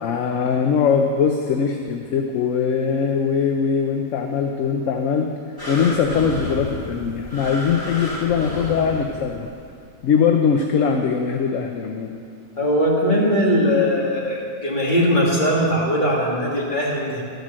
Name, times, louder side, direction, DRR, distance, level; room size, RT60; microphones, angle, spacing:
voice 1, 0.0-5.3 5.7-9.5 10.0-12.1, left 6 dB, 65° left, 3 dB, 1.0 m, -21 dB
sound 1, 5.6-9.5 10.1-10.2, left 1 dB, 15° left, 2.1 m, -31 dB
voice 2, 12.6-17.2, equal, 35° left, -5 dB, 2.2 m, -20 dB
12.5 x 5.2 x 7.4 m, 2.3 s
omnidirectional pair, 1.5 m